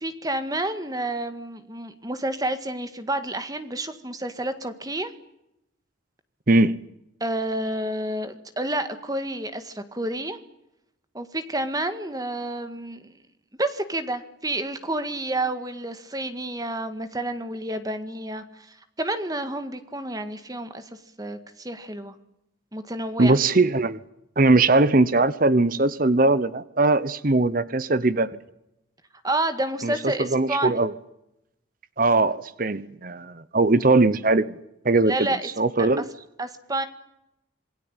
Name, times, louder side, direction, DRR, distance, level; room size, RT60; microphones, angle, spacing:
voice 1, 0.0-5.1 7.2-10.4 11.1-13.1 13.6-18.7 19.0-20.9 21.2-22.1 22.7-23.4 29.2-30.8 35.1-35.4 35.8-36.0 36.4-36.9, right 1 dB, 20° right, 10 dB, 1.8 m, -29 dB
voice 2, 23.2-24.0 24.4-28.4 29.8-30.9 32.0-34.5 34.8-35.3 35.6-36.0, right 2 dB, 45° right, 15 dB, 0.9 m, -20 dB
27.5 x 19.5 x 9.0 m, 0.84 s
head